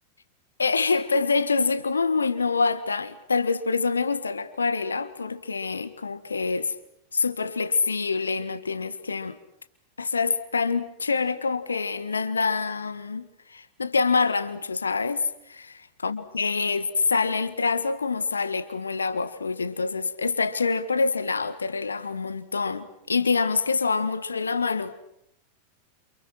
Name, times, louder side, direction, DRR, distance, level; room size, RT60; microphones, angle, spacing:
voice 1, 0.6-6.7 7.1-9.4 10.0-24.9, left 4 dB, 75° left, 1.7 m, -26 dB
29.5 x 28.5 x 6.2 m
figure-of-eight pair, 90°, 0 cm